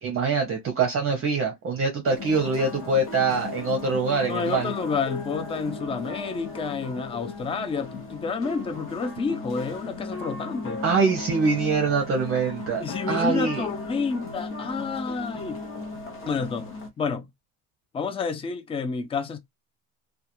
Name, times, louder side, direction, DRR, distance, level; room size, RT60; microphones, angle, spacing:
voice 1, 0.0-4.7 10.8-13.6, right 4 dB, 35° right, 0.6 m, -24 dB
sound 1, 2.0-16.9, left 3 dB, 35° left, 0.8 m, -36 dB
voice 2, 4.3-10.8 12.8-15.6 16.3-16.6 17.0-17.3 17.9-19.4, left 5 dB, 15° left, 0.3 m, -29 dB
2.3 x 2.2 x 2.9 m
cardioid pair, 135°, 38 cm